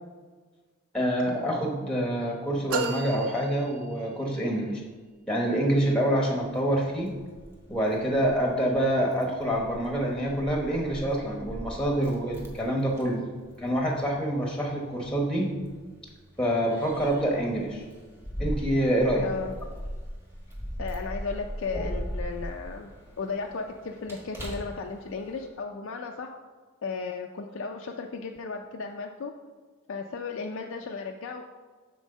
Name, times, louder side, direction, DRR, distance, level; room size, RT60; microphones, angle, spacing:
voice 1, 0.9-4.8 5.3-7.2 7.7-13.2 13.6-15.5 16.4-17.8 18.4-19.3 21.7-21.9, right 1 dB, 5° left, 0 dB, 0.9 m, -26 dB
sound 1, 2.7-4.4, right 4 dB, 80° right, 0.6 m, -33 dB
Keys jangling, 6.4-25.5, equal, 10° right, 1.3 m, -40 dB
voice 2, 19.2-19.6 20.8-26.3 26.8-29.3 29.9-31.6, left 4 dB, 65° left, 3 dB, 0.4 m, -35 dB
6.2 x 4.4 x 6.6 m, 1.4 s
head